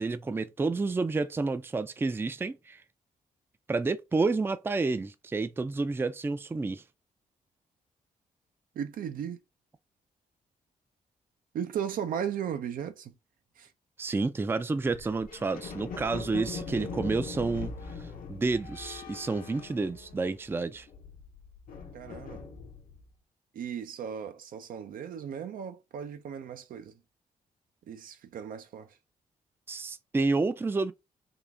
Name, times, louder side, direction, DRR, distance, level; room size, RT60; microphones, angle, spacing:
voice 1, 0.0-2.8 3.7-6.8 14.0-17.7 18.0-20.9 29.7-30.9, right 3 dB, 15° right, 0.4 m, -30 dB
voice 2, 8.8-9.4 11.5-13.1 13.6-13.7 21.9-22.4 23.5-27.0 27.9-28.9, right 8 dB, 75° right, 0.6 m, -36 dB
sound 1, 14.9-20.5 20.8-23.0, left 4 dB, 80° left, 1.0 m, -41 dB
3.7 x 2.4 x 3.4 m
cardioid pair, 80°, 15 cm